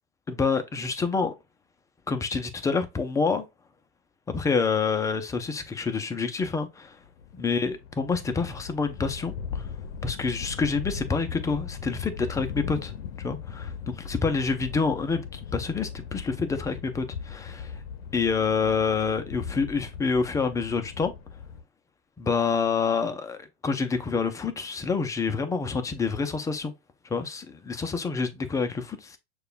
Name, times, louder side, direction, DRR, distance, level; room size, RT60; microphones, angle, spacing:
voice 1, 0.3-1.3 2.1-3.5 4.3-7.0 7.4-9.7 10.0-17.8 18.1-21.1 22.2-26.7 27.0-29.2, left 5 dB, 10° left, 0.4 m, -27 dB
sound 1, 7.0-21.6, left 6 dB, 65° left, 0.6 m, -38 dB
6.5 x 2.3 x 2.4 m
hypercardioid pair, 100°, 33 cm